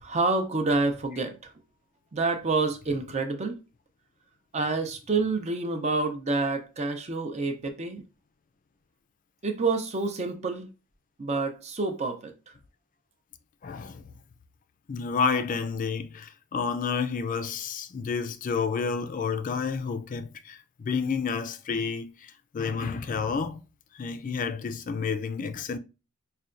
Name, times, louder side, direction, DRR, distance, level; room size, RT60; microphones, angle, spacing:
voice 1, 0.0-1.5 2.1-3.6 4.5-8.0 9.4-10.7 11.2-12.5, right 3 dB, 35° right, 0.6 m, -28 dB
voice 2, 13.6-14.0 14.9-22.1 22.5-23.6 24.0-25.8, left 5 dB, 40° left, 0.4 m, -30 dB
5.5 x 2.2 x 2.5 m
head